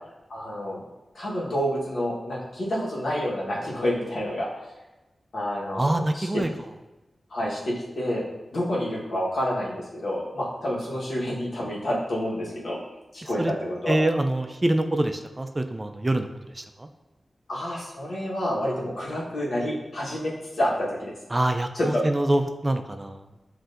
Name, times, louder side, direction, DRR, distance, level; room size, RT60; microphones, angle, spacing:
voice 1, 0.3-0.8 1.1-4.5 5.3-6.4 7.3-8.2 8.5-12.8 13.1-14.0 17.5-21.1 21.7-22.0, equal, 75° left, -5 dB, 1.2 m, -28 dB
voice 2, 5.8-6.5 13.4-13.5 13.9-16.3 21.3-23.2, right 1 dB, 25° right, 6 dB, 0.3 m, -25 dB
7.4 x 2.6 x 2.6 m, 1.1 s
cardioid pair, 65°, 0 cm